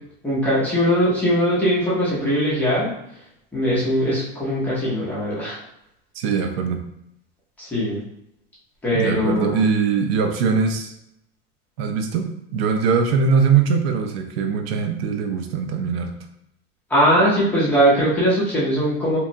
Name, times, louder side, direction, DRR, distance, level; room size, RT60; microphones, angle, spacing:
voice 1, 0.2-2.9 3.5-5.6 7.6-8.0 8.8-9.6 16.9-19.2, equal, 5° left, -9 dB, 0.6 m, -20 dB
voice 2, 6.2-6.8 8.9-10.9 11.8-16.1, right 5 dB, 80° right, 5 dB, 0.5 m, -21 dB
2.9 x 2.1 x 2.6 m, 0.79 s
supercardioid pair, 170°, 31 cm